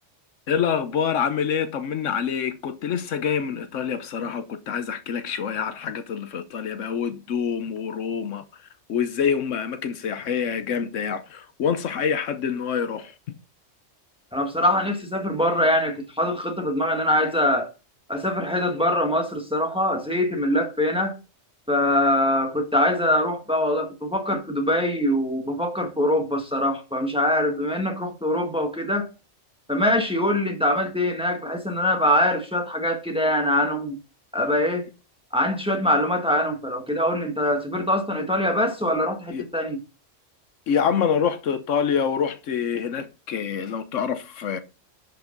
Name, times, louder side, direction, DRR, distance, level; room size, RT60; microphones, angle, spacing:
voice 1, 0.5-8.4 8.9-13.4 39.3-39.5 40.7-44.6, left 7 dB, 75° left, 1.1 m, -26 dB
voice 2, 14.3-17.7 18.1-21.2 21.7-29.1 29.7-34.0 34.3-34.9 35.3-39.8, left 1 dB, 5° right, 1.4 m, -23 dB
10.5 x 5.3 x 3.9 m
omnidirectional pair, 1.3 m